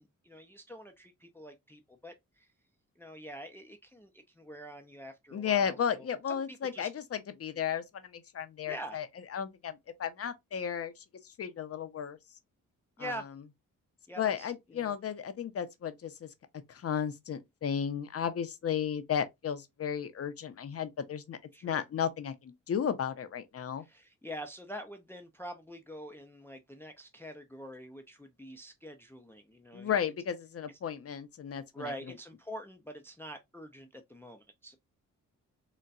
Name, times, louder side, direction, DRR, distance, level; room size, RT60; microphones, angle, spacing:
voice 1, 0.0-2.5 3.0-6.4 6.7-6.9 8.7-9.0 13.0-13.3 14.1-14.9 21.5-21.8 23.8-29.9 31.7-34.8, equal, 5° left, 0.4 m, -45 dB
voice 2, 5.3-9.1 9.3-12.2 13.0-13.2 14.2-16.3 16.7-23.8 29.7-31.9, left 8 dB, 45° left, 0.6 m, -34 dB
4.0 x 2.2 x 2.3 m
cardioid pair, 105°, 32 cm